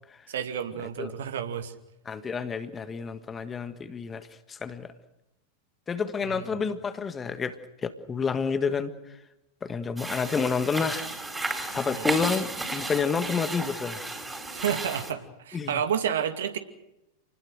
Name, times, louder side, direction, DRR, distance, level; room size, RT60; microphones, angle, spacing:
voice 1, 0.3-1.7 6.2-6.5 11.9-12.1 14.5-16.6, right 8 dB, 60° right, 8 dB, 2.4 m, -30 dB
voice 2, 2.1-4.9 5.9-7.6 7.8-8.9 9.6-11.1 11.7-14.1 15.5-15.8, left 5 dB, 20° left, 11 dB, 1.6 m, -29 dB
sound 1, 10.0-15.1, right 2 dB, 10° right, 4.3 m, -33 dB
29.0 x 20.0 x 6.6 m, 0.89 s
figure-of-eight pair, 90°, 0 cm